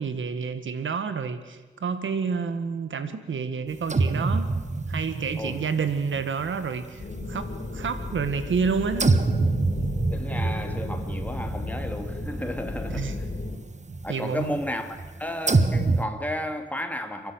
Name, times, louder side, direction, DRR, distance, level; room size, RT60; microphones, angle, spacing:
voice 1, 0.0-4.5 4.9-9.2 12.9-13.2 14.1-14.6, right 5 dB, 85° right, 10 dB, 1.7 m, -29 dB
sound 1, 3.8-7.3 7.6-8.7 8.9-16.1, right 3 dB, 35° right, 1.5 m, -27 dB
sound 2, 7.0-13.6, left 3 dB, 45° left, 4.0 m, -35 dB
voice 2, 10.1-13.2 14.0-17.3, left 1 dB, 10° left, 5 dB, 2.8 m, -33 dB
29.5 x 11.0 x 8.0 m, 1.3 s
cardioid pair, 55°, 20 cm